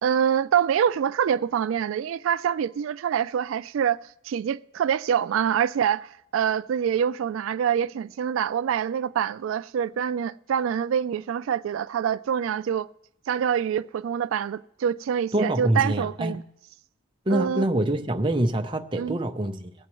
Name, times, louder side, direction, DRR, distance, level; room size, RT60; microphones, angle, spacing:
voice 1, 0.0-4.0 4.2-12.9 13.3-16.4 17.3-17.6 19.0-19.2, right 8 dB, 90° right, 0.3 m, -25 dB
voice 2, 15.3-16.4 17.3-19.7, right 1 dB, 25° right, 0.7 m, -25 dB
23.0 x 8.4 x 3.0 m
head